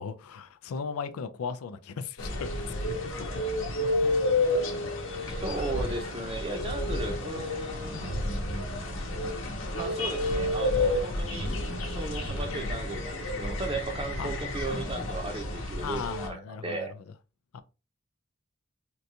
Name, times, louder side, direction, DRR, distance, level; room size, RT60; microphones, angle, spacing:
voice 1, 0.0-2.7 3.0-3.1 7.9-8.2 12.5-12.8 14.2-14.4 15.8-16.9 17.5-17.6, left 5 dB, 85° left, 0.4 m, -37 dB
sound 1, 2.2-16.3, left 1 dB, 60° left, 0.8 m, -30 dB
voice 2, 5.2-8.1 9.7-11.5 11.9-16.9, right 3 dB, 25° right, 0.6 m, -36 dB
3.8 x 2.3 x 2.7 m
head